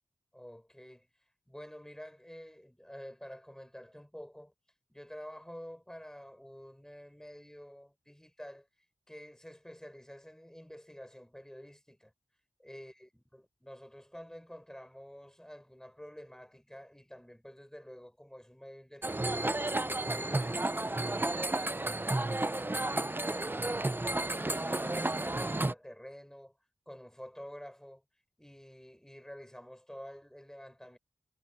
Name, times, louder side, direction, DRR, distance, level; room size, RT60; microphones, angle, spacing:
voice 1, 0.3-1.1 1.5-4.5 4.9-8.7 9.1-12.1 12.6-19.7 20.1-23.8 24.3-26.6 26.9-28.0 28.4-31.0, equal, 5° left, 5.0 m, -49 dB
sound 1, 19.0-25.7, right 2 dB, 15° right, 0.5 m, -32 dB
wide cardioid pair, 85°, 12 cm